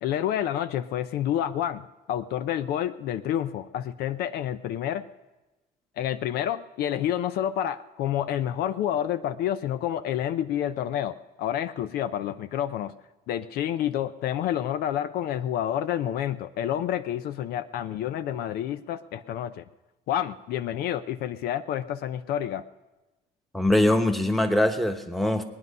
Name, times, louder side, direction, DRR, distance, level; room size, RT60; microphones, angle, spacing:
voice 1, 0.0-5.1 6.0-12.9 13.3-19.6 20.1-22.6, left 10 dB, 65° left, 11 dB, 0.6 m, -29 dB
voice 2, 23.5-25.4, left 1 dB, ahead, 6 dB, 1.2 m, -22 dB
20.5 x 9.5 x 5.5 m, 1.1 s
cardioid pair, 110°, 17 cm